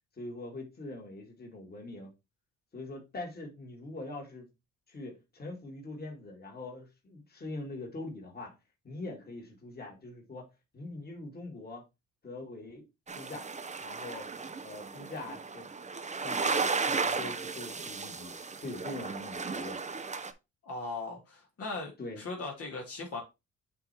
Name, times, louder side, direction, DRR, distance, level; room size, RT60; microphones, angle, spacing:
voice 1, 0.2-2.1 2.7-4.5 4.9-8.6 8.8-10.5 10.7-11.9 12.2-12.8 13.1-13.5 13.8-14.3 14.6-15.7 16.2-18.3 18.6-19.8 22.0-22.2, left 2 dB, 30° left, 2.7 m, -43 dB
sound 1, 13.1-20.3, right 4 dB, 25° right, 0.8 m, -35 dB
voice 2, 20.6-21.9 22.2-23.2, left 3 dB, 50° left, 2.4 m, -38 dB
8.2 x 3.1 x 4.4 m
cardioid pair, 90°, 30 cm